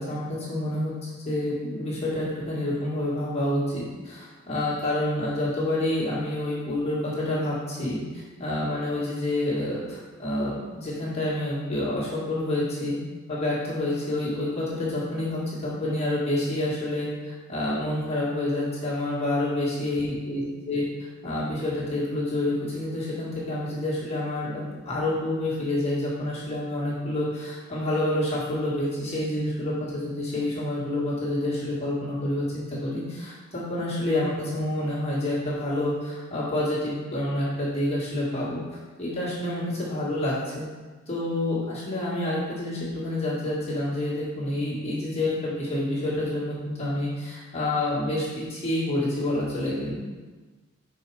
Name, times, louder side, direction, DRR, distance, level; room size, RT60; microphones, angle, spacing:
voice 1, 0.0-13.0 13.3-20.8 21.2-38.6 39.0-40.7 41.1-49.9, left 1 dB, 30° left, -7 dB, 1.8 m, -28 dB
5.7 x 4.8 x 4.8 m, 1.3 s
head